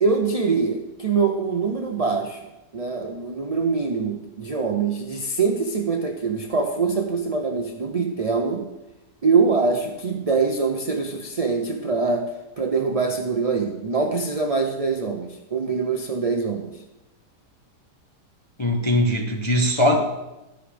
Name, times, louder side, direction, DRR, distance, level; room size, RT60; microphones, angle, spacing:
voice 1, 0.0-2.4 2.7-8.6 9.2-12.3 12.6-16.7, right 4 dB, 45° right, 3 dB, 0.5 m, -24 dB
voice 2, 18.6-20.0, left 1 dB, 20° left, 1 dB, 0.8 m, -20 dB
13.0 x 10.5 x 3.4 m, 0.99 s
omnidirectional pair, 1.8 m